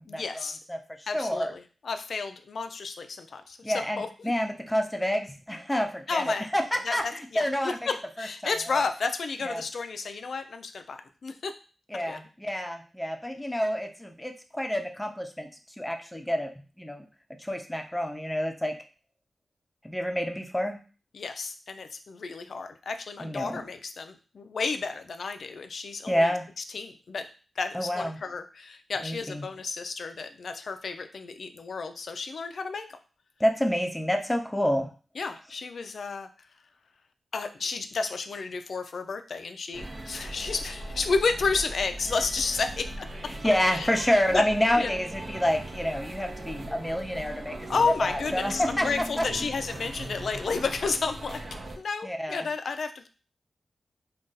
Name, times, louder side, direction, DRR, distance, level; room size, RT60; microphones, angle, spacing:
voice 1, 0.1-0.6 1.1-4.3 6.1-6.5 6.8-11.5 11.9-12.2 21.1-27.3 27.6-33.0 35.2-36.3 37.3-43.1 43.7-44.5 44.8-44.9 47.7-51.4 51.8-53.1, left 4 dB, 70° left, 8 dB, 0.3 m, -32 dB
voice 2, 1.1-1.5 3.6-7.0 7.4-7.8 8.2-8.8 9.4-9.6 11.9-15.5 15.8-16.5 16.8-17.0 17.4-18.7 19.8-20.8 23.2-23.6 26.1-26.5 27.7-28.2 29.0-29.4 33.4-34.9 43.4-47.5 48.0-48.9 49.2-49.3 52.0-52.5, equal, 10° left, 4 dB, 0.5 m, -28 dB
sound 1, 39.7-51.8, right 1 dB, 55° right, 0.5 m, -39 dB
2.6 x 2.3 x 3.8 m, 0.37 s
cardioid pair, 70°, 0 cm